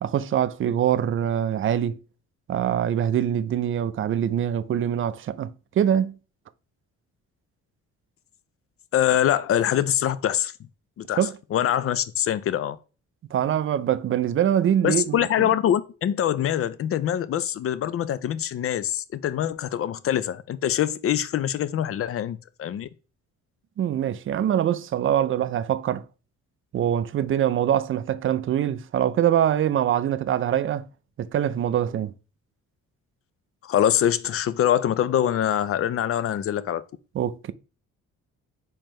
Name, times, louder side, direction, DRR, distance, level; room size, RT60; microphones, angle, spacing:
voice 1, 0.0-2.0 2.5-5.5 5.8-6.1 11.2-11.3 13.3-15.5 23.8-26.0 26.7-30.9 31.2-32.1 37.1-37.5, right 10 dB, 45° right, 0.4 m, -24 dB
voice 2, 8.9-10.5 11.0-11.3 11.5-12.8 14.8-22.9 33.6-36.8, left 10 dB, 50° left, 0.5 m, -24 dB
4.4 x 3.8 x 3.1 m
cardioid pair, 90°, 30 cm